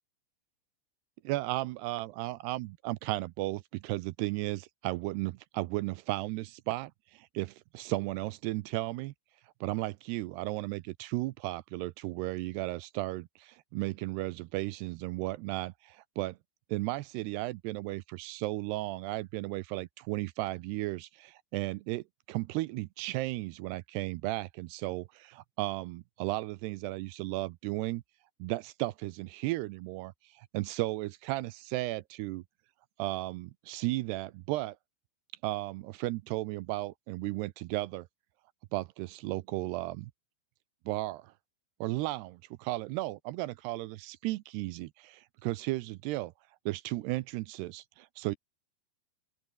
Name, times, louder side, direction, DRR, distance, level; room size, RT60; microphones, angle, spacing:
voice 1, 1.2-9.1 9.6-16.4 16.7-28.0 28.4-32.4 33.0-34.8 35.4-38.1 38.7-40.1 40.9-41.3 41.8-46.3 46.7-48.4, right 18 dB, 80° right, 2.6 m, -35 dB
open air
omnidirectional pair, 5.1 m